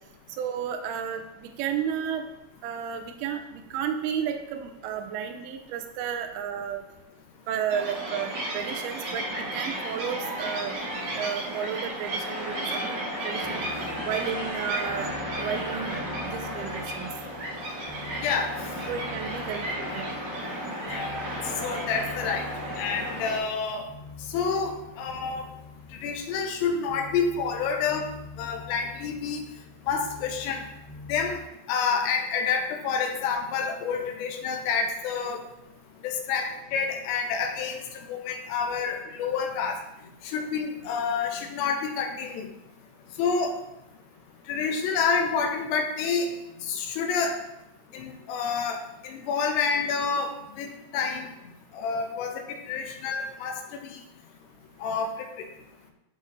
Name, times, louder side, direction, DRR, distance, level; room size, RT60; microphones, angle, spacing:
voice 1, 0.4-2.2 2.6-6.8 7.5-10.8 11.1-13.7 14.0-15.1 15.4-17.1 18.9-20.2, right 8 dB, 85° right, 5 dB, 2.2 m, -32 dB
sound 1, 7.7-23.4, right 1 dB, 60° right, 1.6 m, -33 dB
sound 2, 13.4-31.3, left 4 dB, 15° right, 1.0 m, -46 dB
voice 2, 21.6-22.5 22.8-23.8 24.3-25.4 26.0-28.1 28.4-29.4 29.9-30.6 31.1-31.4 31.7-35.4 36.0-39.8 40.2-42.5 43.2-43.5 44.5-46.3 46.7-47.4 47.9-51.3 51.7-52.4 52.7-54.0 54.8-55.1, left 5 dB, 80° left, 3 dB, 2.7 m, -28 dB
12.0 x 4.3 x 2.6 m, 0.90 s
omnidirectional pair, 5.0 m